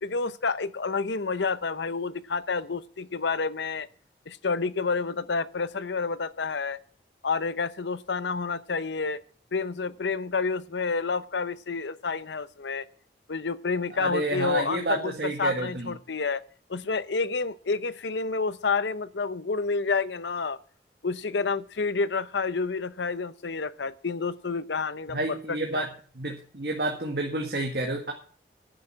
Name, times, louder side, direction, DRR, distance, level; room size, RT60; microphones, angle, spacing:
voice 1, 0.0-3.9 4.3-6.8 7.2-9.2 9.5-12.9 13.3-16.4 16.7-20.6 21.0-25.9, left 4 dB, 80° left, 0.7 m, -29 dB
voice 2, 14.0-15.9 25.1-25.9 26.2-28.1, right 2 dB, 55° right, 1.8 m, -30 dB
11.0 x 9.7 x 6.2 m
head